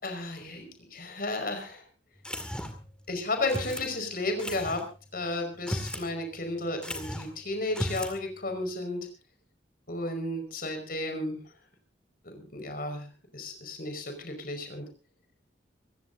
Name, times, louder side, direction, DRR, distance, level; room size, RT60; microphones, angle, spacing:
voice 1, 0.0-1.8 3.1-4.8 5.1-9.1 9.9-11.4 12.2-14.9, left 2 dB, 50° left, 6 dB, 5.2 m, -33 dB
sound 1, 2.2-2.9 3.5-3.9 4.4-4.8 5.5-6.1 6.4-6.5 6.8-7.3 7.7-8.2, equal, 5° left, 2.1 m, -35 dB
25.5 x 16.0 x 2.7 m, 0.36 s
head